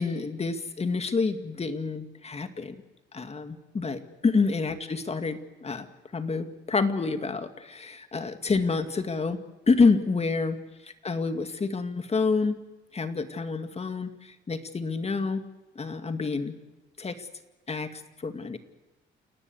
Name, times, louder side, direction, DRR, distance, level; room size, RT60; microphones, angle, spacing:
voice 1, 0.0-2.8 3.1-5.9 6.1-9.4 9.7-10.6 11.0-12.6 12.9-15.4 15.8-16.5 17.0-17.3 17.7-18.6, left 4 dB, 30° left, 8 dB, 2.2 m, -28 dB
29.0 x 18.0 x 7.9 m, 1.1 s
cardioid pair, 90°, 20 cm